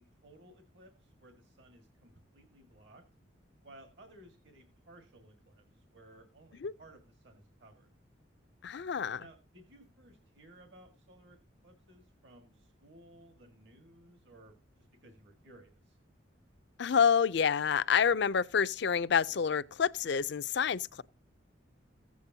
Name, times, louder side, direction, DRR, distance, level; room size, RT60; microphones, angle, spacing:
voice 1, 0.0-3.0 3.6-7.9 9.2-11.4 11.6-16.0, right 1 dB, 65° right, 1.8 m, -58 dB
voice 2, 8.6-9.2 16.8-21.0, left 7 dB, 60° left, 0.5 m, -28 dB
15.5 x 8.3 x 2.7 m
head